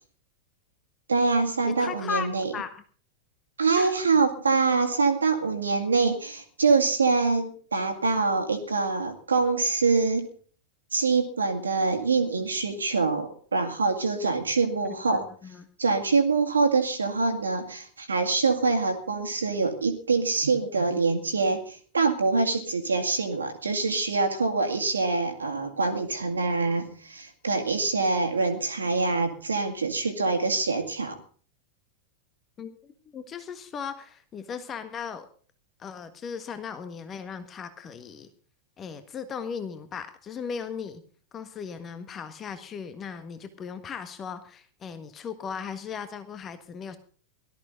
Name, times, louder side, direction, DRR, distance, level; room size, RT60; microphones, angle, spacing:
voice 1, 1.1-2.5 3.6-10.3 10.9-15.3 15.8-31.2, right 4 dB, 75° right, 5 dB, 2.1 m, -25 dB
voice 2, 1.6-2.3 2.5-2.8 3.7-3.9 14.8-15.7 32.6-35.3 35.8-38.3 38.8-41.0 41.3-47.0, left 6 dB, 25° left, 10 dB, 1.5 m, -37 dB
18.5 x 13.5 x 3.9 m, 0.43 s
figure-of-eight pair, 90°, 0 cm